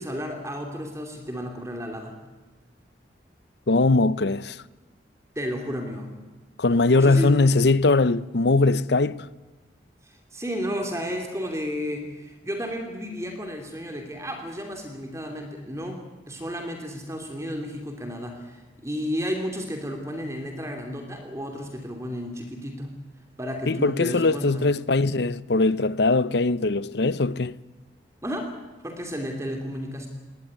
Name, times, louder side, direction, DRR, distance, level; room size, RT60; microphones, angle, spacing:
voice 1, 0.0-2.2 5.3-6.1 6.9-7.3 10.0-22.9 23.4-24.7 28.2-28.5 28.8-30.1, equal, 15° right, 2.8 m, -32 dB
voice 2, 3.7-4.6 6.6-9.3 23.7-27.6, left 3 dB, 60° left, 0.7 m, -21 dB
20.5 x 18.5 x 9.7 m
head